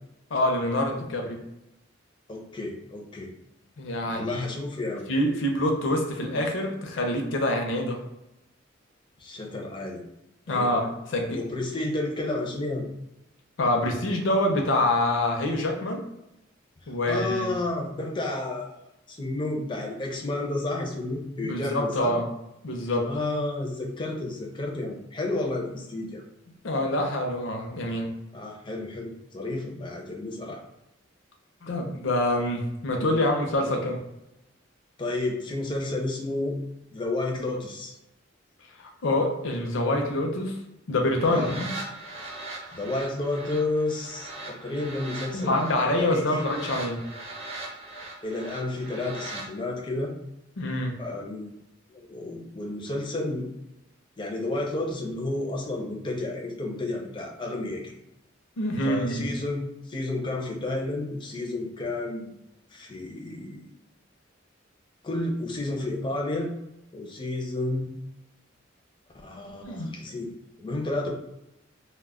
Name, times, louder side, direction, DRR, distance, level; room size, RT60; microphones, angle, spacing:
voice 1, 0.3-1.4 3.8-4.4 5.1-8.0 10.5-11.4 13.6-16.0 16.9-17.5 21.4-22.3 22.6-23.1 26.6-28.1 31.6-34.0 38.8-40.6 40.9-41.7 45.3-47.0 50.6-50.9 58.6-59.3 69.6-69.9, left 1 dB, 75° left, 2 dB, 0.5 m, -26 dB
voice 2, 2.3-3.3 4.1-5.1 9.2-10.0 10.5-10.8 11.3-12.9 17.1-18.8 19.1-22.2 23.0-26.2 28.3-30.6 35.0-36.6 36.9-37.9 41.3-41.5 42.7-45.6 46.0-46.4 48.2-50.2 51.0-51.6 51.9-53.5 54.2-58.0 58.8-62.3 62.7-63.6 65.0-66.5 66.9-67.9 69.2-71.1, left 2 dB, 25° left, 1 dB, 0.4 m, -31 dB
sound 1, 41.0-49.5, right 2 dB, 30° right, 0.5 m, -40 dB
2.1 x 2.0 x 3.5 m, 0.88 s
head